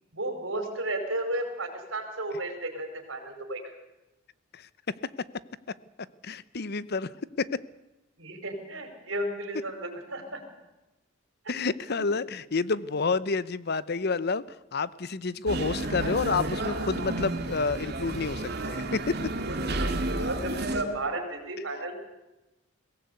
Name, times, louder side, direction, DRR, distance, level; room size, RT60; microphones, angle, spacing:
voice 1, 0.1-3.6 8.2-10.4 12.1-12.2 19.5-22.0, right 1 dB, 75° right, 5 dB, 5.2 m, -33 dB
voice 2, 6.2-7.1 7.4-7.5 11.5-14.4 14.7-19.2, left 4 dB, 55° left, 18 dB, 0.8 m, -29 dB
sound 1, 15.5-20.8, right 2 dB, 55° right, 2.3 m, -31 dB
22.5 x 17.5 x 8.3 m, 1.0 s
head